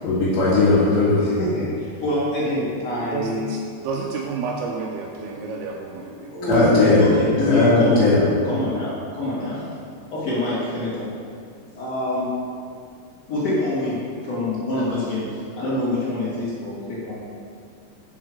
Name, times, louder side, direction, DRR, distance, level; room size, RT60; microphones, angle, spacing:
voice 1, 0.0-1.2 6.5-7.1 7.4-8.2, left 2 dB, 75° left, -9 dB, 3.5 m, -17 dB
voice 2, 1.2-3.6 5.3-5.4 6.0-9.6 10.1-11.1 11.7-12.3 13.3-17.3, left 2 dB, 45° left, -10 dB, 2.9 m, -25 dB
voice 3, 3.1-3.6 3.8-6.3, right 4 dB, 85° right, 0 dB, 2.2 m, -30 dB
7.7 x 4.6 x 6.4 m, 2.2 s
omnidirectional pair, 5.2 m